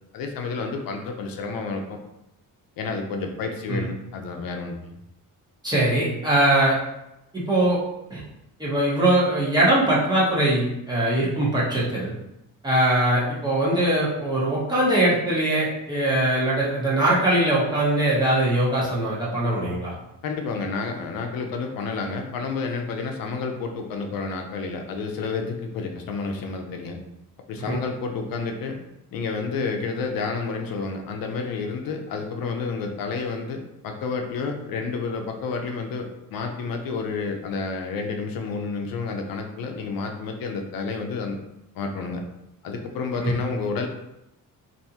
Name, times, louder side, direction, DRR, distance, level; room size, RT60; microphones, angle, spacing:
voice 1, 0.1-2.0 2.8-4.9 20.2-27.0 27.5-28.8 29.1-41.4 41.7-42.2 42.6-43.9, left 4 dB, 80° left, 4 dB, 0.6 m, -30 dB
voice 2, 5.6-6.8 7.3-7.8 8.1-8.2 8.6-12.1 12.6-19.9 27.6-27.8 43.2-43.3, right 1 dB, 10° right, -7 dB, 0.8 m, -21 dB
3.3 x 2.6 x 2.8 m, 0.86 s
wide cardioid pair, 165°, 34 cm